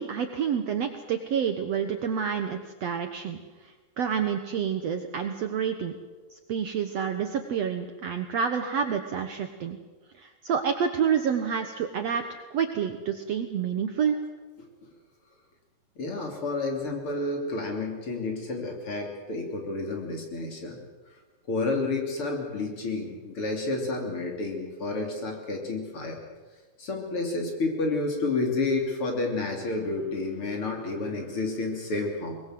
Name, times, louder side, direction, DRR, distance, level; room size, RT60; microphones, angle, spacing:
voice 1, 0.0-3.4 4.0-5.9 6.3-9.8 10.2-14.2, right 7 dB, 60° right, 7 dB, 1.9 m, -28 dB
voice 2, 16.0-20.8 21.1-21.2 21.5-26.2 26.8-32.4, left 3 dB, 40° left, 2 dB, 3.8 m, -30 dB
22.5 x 21.0 x 7.7 m, 1.3 s
omnidirectional pair, 4.0 m